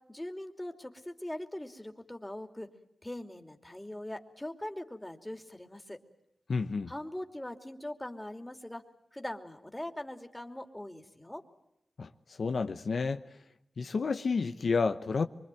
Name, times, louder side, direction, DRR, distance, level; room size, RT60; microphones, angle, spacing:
voice 1, 0.1-2.7 3.0-6.0 6.9-8.8 9.1-11.4, left 1 dB, 15° left, 2.9 m, -41 dB
voice 2, 6.5-6.9 12.0-12.1 12.4-13.2 13.8-15.3, left 4 dB, 75° left, 1.0 m, -30 dB
24.5 x 24.5 x 9.2 m
cardioid pair, 60°, 0 cm